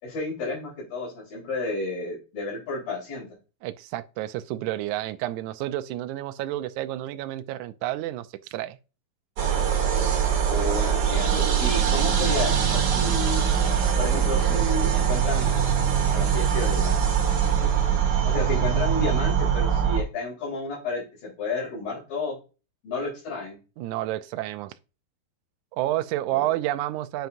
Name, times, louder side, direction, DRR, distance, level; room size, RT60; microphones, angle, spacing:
voice 1, 0.0-3.3 10.5-13.5 14.0-15.5 16.1-17.0 17.6-22.4 22.8-23.6 26.3-26.5, left 2 dB, 75° left, 5.8 m, -31 dB
voice 2, 3.6-8.8 23.8-24.7 25.7-27.3, right 14 dB, 90° right, 1.7 m, -30 dB
sound 1, 9.4-20.0, right 8 dB, 55° right, 1.9 m, -22 dB
9.2 x 5.8 x 2.6 m
omnidirectional pair, 4.1 m